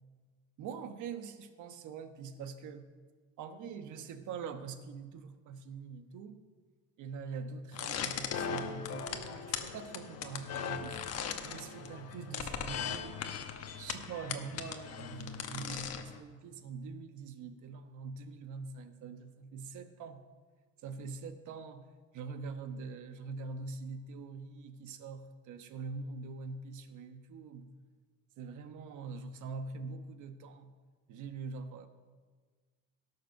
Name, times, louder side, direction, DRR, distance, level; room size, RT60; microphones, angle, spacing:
voice 1, 0.6-2.9 3.4-6.4 7.0-11.0 11.4-13.3 13.8-20.2 20.8-21.9 22.1-27.7 28.4-30.7 31.1-31.9, right 4 dB, 70° right, 8 dB, 1.2 m, -44 dB
sound 1, 7.7-16.2, left 7 dB, 50° left, 1.1 m, -39 dB
17.5 x 6.8 x 5.8 m, 1.5 s
cardioid pair, 140°, 31 cm